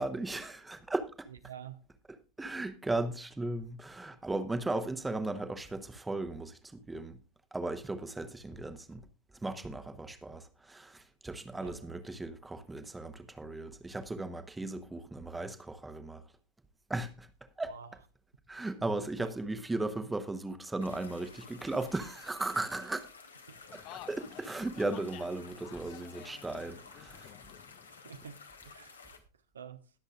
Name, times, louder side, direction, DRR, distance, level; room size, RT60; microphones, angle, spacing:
voice 1, 0.0-1.3 2.4-7.2 7.5-9.1 9.4-16.2 16.9-17.3 17.6-17.7 18.5-23.1 23.7-27.3, right 2 dB, 10° right, 1.0 m, -36 dB
voice 2, 1.5-1.8 11.6-11.9 17.6-17.9 19.2-19.3 23.5-23.6 28.0-29.0 29.5-29.9, right 7 dB, 70° right, 0.8 m, -48 dB
sound 1, 20.8-29.2, left 4 dB, 75° left, 1.5 m, -53 dB
sound 2, 23.7-28.7, left 13 dB, 40° left, 0.6 m, -52 dB
21.0 x 7.8 x 2.4 m
figure-of-eight pair, 90°, 0 cm